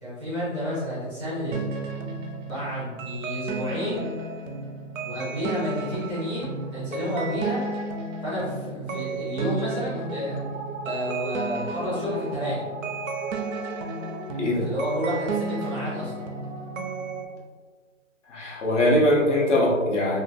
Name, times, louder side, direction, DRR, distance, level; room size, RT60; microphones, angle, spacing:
voice 1, 0.0-1.7 2.4-4.1 5.0-7.8 8.2-10.4 10.8-12.6 14.6-16.3, equal, 5° left, -15 dB, 0.5 m, -30 dB
sound 1, 1.5-17.2, right 3 dB, 85° right, 0.6 m, -33 dB
voice 2, 14.4-14.7 18.3-20.2, left 1 dB, 65° left, -3 dB, 1.0 m, -21 dB
2.9 x 2.5 x 2.5 m, 1.5 s
hypercardioid pair, 160°, 39 cm